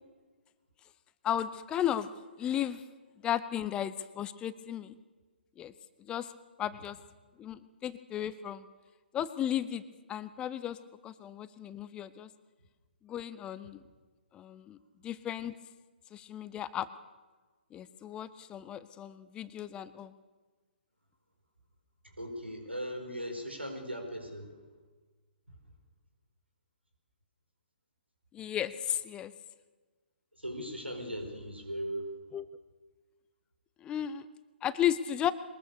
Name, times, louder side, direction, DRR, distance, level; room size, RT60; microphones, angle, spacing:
voice 1, 1.2-2.1 2.4-2.8 3.2-5.0 5.6-5.7 6.0-6.3 6.6-7.0 7.4-8.7 9.1-9.8 10.1-10.8 11.0-12.3 13.0-13.8 14.3-14.8 15.0-15.5 16.1-16.9 17.7-20.1 28.3-29.3 32.3-32.5 33.8-34.3 34.6-35.3, left 10 dB, 15° left, 15 dB, 0.7 m, -34 dB
voice 2, 22.2-24.5 30.4-32.1, equal, 90° right, 5 dB, 5.0 m, -38 dB
22.5 x 20.5 x 6.8 m, 1.3 s
figure-of-eight pair, 125°, 6 cm